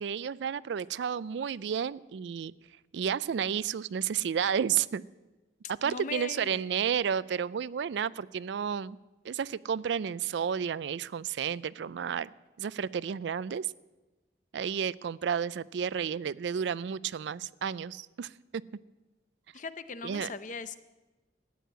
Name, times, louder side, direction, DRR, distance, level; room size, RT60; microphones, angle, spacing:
voice 1, 0.0-2.5 2.9-5.0 5.8-9.0 9.2-12.3 12.6-13.7 14.5-18.6 20.0-20.3, right 7 dB, 75° right, 20 dB, 0.4 m, -31 dB
voice 2, 5.8-6.7 19.5-20.8, left 4 dB, 45° left, 13 dB, 0.6 m, -39 dB
14.0 x 9.3 x 8.0 m, 1.1 s
head